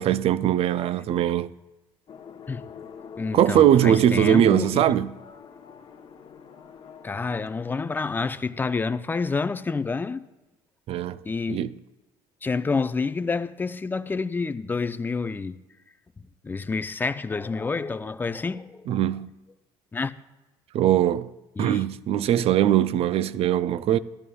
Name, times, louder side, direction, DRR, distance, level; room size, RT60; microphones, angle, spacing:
voice 1, 0.0-1.5 3.3-5.1 10.9-11.2 11.5-11.7 18.9-19.3 20.7-21.3 21.6-24.0, right 10 dB, 50° right, 0.4 m, -21 dB
sound 1, 2.1-7.8, left 7 dB, 45° left, 1.0 m, -45 dB
voice 2, 3.2-4.8 7.0-10.2 11.3-11.6 12.4-15.6 16.2-19.0 19.9-20.1 21.6-21.8, left 4 dB, 15° left, 0.4 m, -28 dB
12.5 x 12.5 x 2.3 m
supercardioid pair, 85°, 12 cm